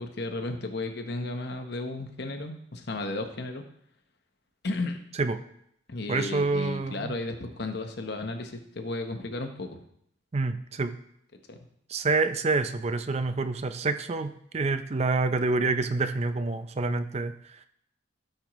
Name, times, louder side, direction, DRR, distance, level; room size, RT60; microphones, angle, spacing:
voice 1, 0.0-3.6 4.6-5.0 5.9-9.8 11.5-11.6, left 2 dB, 60° left, 6 dB, 0.9 m, -34 dB
voice 2, 6.1-7.2 10.3-11.0 11.9-17.3, right 3 dB, 35° right, 10 dB, 0.5 m, -27 dB
13.5 x 5.4 x 3.1 m, 0.70 s
head